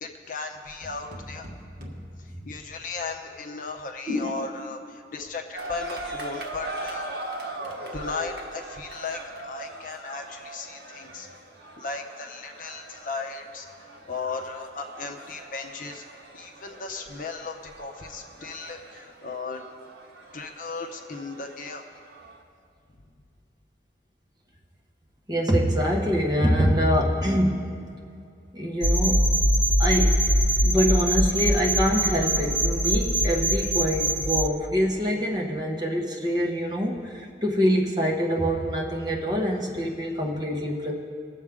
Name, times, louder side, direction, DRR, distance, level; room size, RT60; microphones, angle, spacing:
voice 1, 0.0-1.5 2.2-7.1 7.9-11.3 11.8-13.7 14.1-16.0 16.3-19.6 20.3-21.8, left 4 dB, 50° left, 3 dB, 0.7 m, -36 dB
sound 1, 0.8-3.1, equal, 45° right, 1.4 m, -43 dB
voice 2, 4.1-4.5 25.3-27.7 28.5-29.3 29.8-30.2 30.6-40.9, equal, 25° right, -2 dB, 1.1 m, -25 dB
sound 2, 5.6-22.4, right 2 dB, 70° right, 1.2 m, -40 dB
sound 3, 28.8-34.5, equal, 5° right, 0.5 m, -22 dB
20.0 x 7.3 x 3.6 m, 2.4 s
head